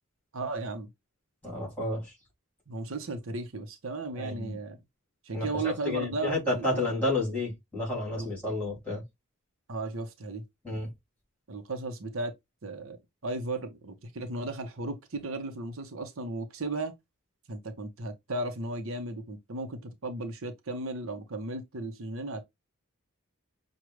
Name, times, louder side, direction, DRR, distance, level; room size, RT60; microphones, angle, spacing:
voice 1, 0.3-0.9 2.7-4.8 5.2-6.9 8.2-8.3 9.7-10.4 11.5-12.3 12.6-13.0 13.2-16.9 17.5-22.4, right 2 dB, 70° right, 0.8 m, -35 dB
voice 2, 1.4-2.0 4.1-4.6 5.3-9.0 10.6-10.9, left 2 dB, 5° left, 2.9 m, -31 dB
6.2 x 2.3 x 3.1 m
head